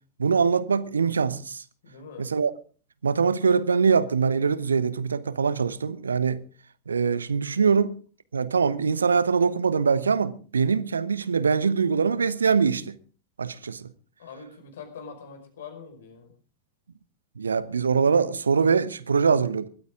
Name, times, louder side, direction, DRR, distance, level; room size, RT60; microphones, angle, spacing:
voice 1, 0.2-1.6 2.2-2.5 3.0-6.4 6.9-8.0 8.3-13.0 13.4-13.9 17.4-19.7, right 5 dB, 75° right, 0.9 m, -23 dB
voice 2, 1.8-2.3 14.2-16.3, left 5 dB, 60° left, 5.0 m, -43 dB
21.0 x 14.0 x 3.7 m
figure-of-eight pair, 90°, 0 cm